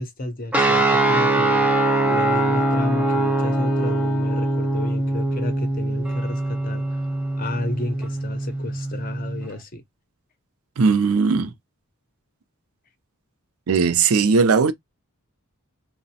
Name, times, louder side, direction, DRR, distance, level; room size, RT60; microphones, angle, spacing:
voice 1, 0.0-7.0 7.4-9.8, left 2 dB, 40° left, 0.6 m, -32 dB
sound 1, 0.5-9.5, right 2 dB, 5° right, 0.4 m, -22 dB
Wind instrument woodwind instrument, 1.0-5.1, left 9 dB, 85° left, 0.6 m, -33 dB
voice 2, 10.8-11.5 13.7-14.7, right 5 dB, 75° right, 0.4 m, -18 dB
2.9 x 2.0 x 2.7 m
head